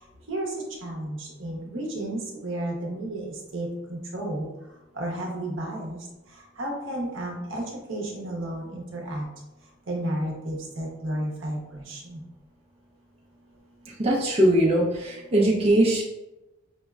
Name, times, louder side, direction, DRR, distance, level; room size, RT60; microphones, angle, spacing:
voice 1, 0.8-4.5 5.0-6.0 6.6-7.6 7.9-9.2 9.9-11.6 11.9-12.2, right 1 dB, 65° right, 0 dB, 0.7 m, -32 dB
voice 2, 14.0-16.0, right 1 dB, 30° right, -4 dB, 0.5 m, -21 dB
5.1 x 2.1 x 2.3 m, 1.0 s
head